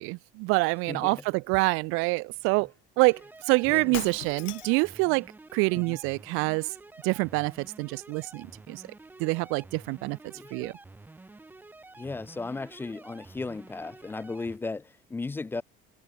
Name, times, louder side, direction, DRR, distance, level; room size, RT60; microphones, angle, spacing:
voice 1, 0.0-2.7 3.0-3.2 3.5-5.3 5.5-6.7 7.0-8.8 9.2-10.2 10.5-10.7, right 28 dB, 80° right, 0.6 m, -26 dB
voice 2, 0.9-1.2 3.7-4.0 5.7-6.0 10.3-10.7 12.0-15.6, left 3 dB, 10° left, 0.5 m, -36 dB
sound 1, 3.1-14.6, right 2 dB, 10° right, 2.9 m, -50 dB
Shatter, 3.9-4.9, left 20 dB, 65° left, 3.0 m, -39 dB
cardioid pair, 180°, 21 cm